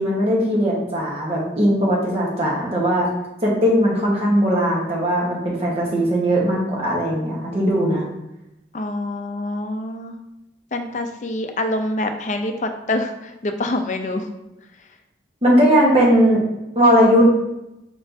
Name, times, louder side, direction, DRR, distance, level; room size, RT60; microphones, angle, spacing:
voice 1, 0.0-3.1 3.4-8.0 15.4-16.4 16.7-17.3, equal, 35° right, -4 dB, 1.2 m, -18 dB
voice 2, 8.7-10.1 10.7-14.3, left 1 dB, 40° left, 5 dB, 0.5 m, -26 dB
4.7 x 4.3 x 2.6 m, 0.91 s
head